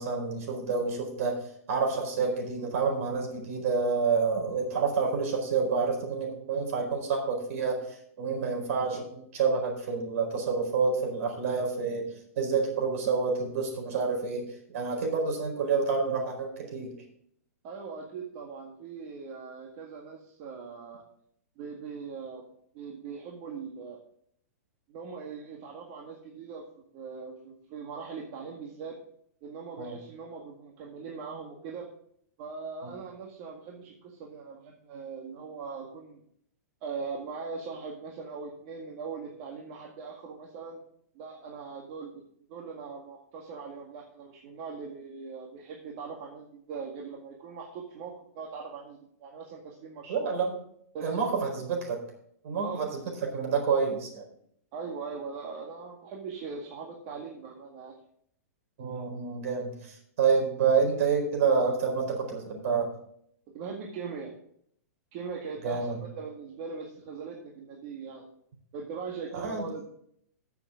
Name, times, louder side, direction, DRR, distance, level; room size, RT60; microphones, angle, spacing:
voice 1, 0.0-1.3 1.7-12.1 12.3-16.9 29.8-30.0 32.8-32.9 50.1-50.5 51.0-52.0 52.4-54.2 58.8-62.9 65.6-66.0 69.3-69.6, right 5 dB, 60° right, 2 dB, 4.5 m, -28 dB
voice 2, 17.6-21.0 21.6-24.0 24.9-26.7 26.9-29.0 29.4-31.9 32.4-36.2 36.8-40.8 41.1-42.2 42.5-50.3 50.9-51.5 52.6-52.9 54.7-57.9 63.5-64.3 65.1-68.3 68.7-69.9, right 5 dB, 45° right, 0 dB, 1.9 m, -40 dB
14.5 x 7.1 x 3.8 m, 0.67 s
hypercardioid pair, 135°, 9 cm